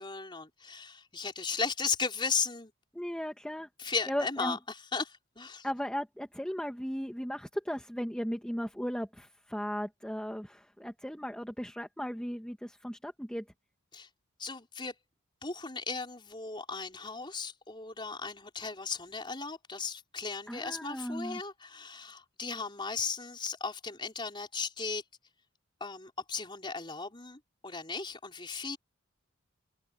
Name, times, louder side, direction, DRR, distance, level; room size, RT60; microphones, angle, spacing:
voice 1, 0.0-2.7 3.8-4.6 4.9-5.7 13.9-14.1 14.4-14.9 15.4-25.0 25.8-28.8, left 4 dB, 25° left, 4.6 m, -36 dB
voice 2, 2.9-3.7 4.1-4.6 5.6-13.4 20.5-21.4, equal, 5° left, 1.5 m, -36 dB
open air
head